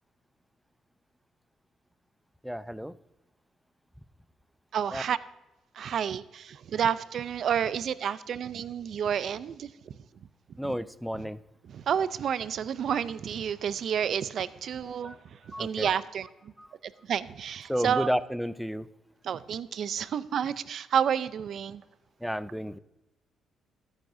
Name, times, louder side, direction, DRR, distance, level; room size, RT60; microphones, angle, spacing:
voice 1, 2.4-2.9 4.9-5.0 10.6-11.4 14.8-15.2 15.5-16.0 16.6-16.7 17.7-18.9 22.2-22.8, equal, ahead, 16 dB, 0.4 m, -32 dB
voice 2, 4.7-5.2 5.7-9.7 10.6-10.7 11.6-15.2 15.5-16.5 16.8-18.1 19.2-21.8, right 8 dB, 60° right, 16 dB, 0.5 m, -30 dB
13.5 x 10.5 x 2.7 m, 0.99 s
cardioid pair, 90°, 0 cm